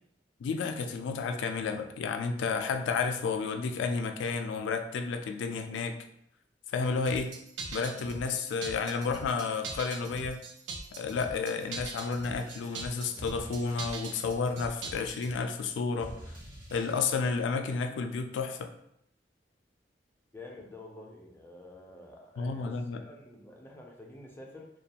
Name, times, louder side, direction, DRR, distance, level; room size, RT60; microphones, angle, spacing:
voice 1, 0.4-6.0 6.7-7.3 7.7-10.4 10.9-16.1 16.7-18.7 22.4-23.0, left 5 dB, 85° left, 7 dB, 0.3 m, -31 dB
sound 1, 7.1-15.3, right 4 dB, 75° right, 0.4 m, -41 dB
sound 2, 11.8-17.4, equal, 50° right, 0.9 m, -50 dB
voice 2, 20.3-24.7, left 2 dB, 15° left, -1 dB, 0.4 m, -49 dB
2.4 x 2.2 x 2.7 m, 0.75 s
head